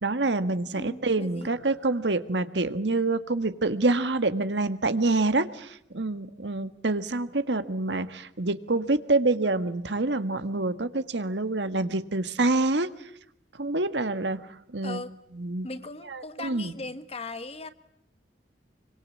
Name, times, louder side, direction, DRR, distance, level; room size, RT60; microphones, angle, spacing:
voice 1, 0.0-12.9 13.6-14.4 14.7-15.0 15.4-15.7 16.1-16.7, right 2 dB, 80° right, 11 dB, 1.6 m, -26 dB
voice 2, 0.7-1.5 14.8-15.1 15.6-17.7, left 2 dB, 35° left, 11 dB, 1.5 m, -38 dB
26.5 x 24.5 x 8.6 m, 0.76 s
head